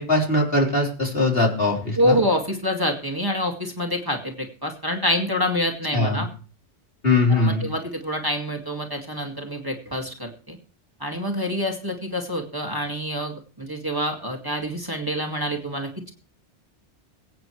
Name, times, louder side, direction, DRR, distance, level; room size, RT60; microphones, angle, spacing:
voice 1, 0.0-2.2 5.9-6.2 7.0-7.6, left 2 dB, 55° left, 0 dB, 4.1 m, -21 dB
voice 2, 2.0-6.3 7.3-10.6 11.0-16.1, equal, 20° right, 1 dB, 2.1 m, -26 dB
22.5 x 9.1 x 3.2 m, 0.38 s
omnidirectional pair, 1.2 m